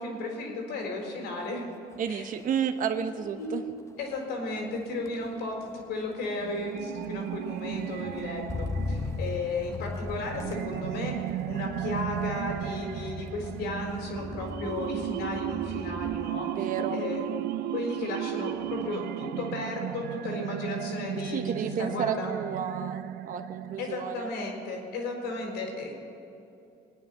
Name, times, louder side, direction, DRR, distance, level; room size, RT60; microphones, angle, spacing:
voice 1, 0.0-1.7 2.1-2.3 3.1-3.6 4.0-11.1 11.5-16.5 16.9-17.2 17.7-22.3 23.8-25.9, left 2 dB, 85° left, 1 dB, 4.3 m, -34 dB
Motor vehicle (road), 1.3-1.6 1.9-16.4 16.7-17.2, left 3 dB, 15° left, 0.7 m, -40 dB
voice 2, 2.0-3.6 16.5-17.0 21.2-24.3, right 7 dB, 55° right, 7 dB, 1.0 m, -31 dB
sound 1, 6.2-24.2, right 14 dB, 70° right, 0.4 m, -35 dB
22.5 x 9.7 x 5.7 m, 2.8 s
cardioid pair, 110°, 17 cm